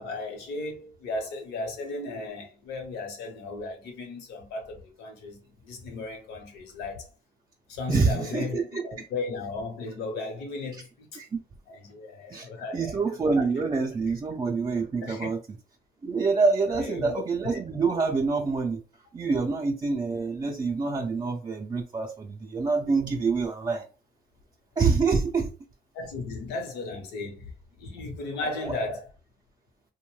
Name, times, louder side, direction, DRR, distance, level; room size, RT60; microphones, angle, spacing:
voice 1, 0.0-7.1 7.7-11.2 11.7-13.0 15.0-15.3 16.7-17.2 25.9-27.5 27.8-29.1, left 3 dB, 90° left, 0.9 m, -35 dB
voice 2, 7.9-9.1 11.2-11.4 12.3-15.4 16.0-18.8 19.1-23.8 24.8-25.5 28.4-28.8, right 4 dB, 25° right, 0.4 m, -26 dB
2.6 x 2.1 x 3.1 m
cardioid pair, 110°, 17 cm